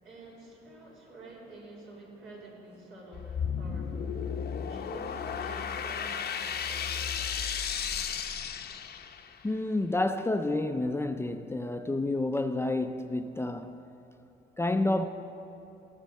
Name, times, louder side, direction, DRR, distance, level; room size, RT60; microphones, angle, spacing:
voice 1, 0.0-4.2 4.7-7.3, right 2 dB, 75° right, 3.6 m, -49 dB
sound 1, 3.1-9.4, left 7 dB, 55° left, 0.8 m, -34 dB
voice 2, 9.4-13.8 14.6-15.0, left 2 dB, 10° left, 0.5 m, -29 dB
17.0 x 7.4 x 6.6 m
cardioid pair, 90°, 20 cm